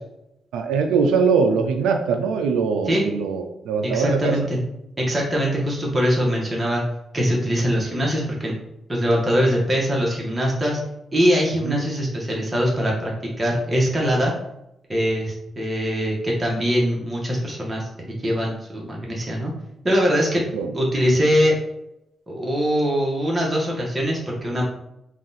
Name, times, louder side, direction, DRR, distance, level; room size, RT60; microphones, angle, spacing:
voice 1, 0.5-4.3 11.6-11.9 20.5-20.7, right 5 dB, 85° right, 5 dB, 0.3 m, -22 dB
voice 2, 3.8-4.6 5.0-6.8 7.1-8.6 8.9-10.8 11.1-14.3 14.9-19.5 19.8-20.5 20.7-21.6 22.3-24.6, equal, 25° right, -3 dB, 1.2 m, -22 dB
3.6 x 2.4 x 4.0 m, 0.84 s
supercardioid pair, 50°, 0 cm